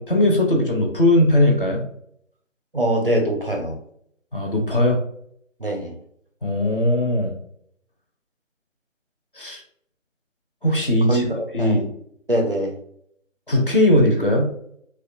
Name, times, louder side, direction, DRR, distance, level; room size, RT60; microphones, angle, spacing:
voice 1, 0.0-1.8 4.3-5.0 6.4-7.3 9.4-9.6 10.6-11.3 11.5-11.8 13.5-14.5, left 1 dB, 45° left, 0 dB, 0.5 m, -19 dB
voice 2, 2.7-3.8 5.6-5.9 11.1-11.9 12.3-12.7, right 1 dB, 45° right, 2 dB, 0.4 m, -23 dB
2.5 x 2.2 x 2.5 m, 0.67 s
figure-of-eight pair, 155°, 39 cm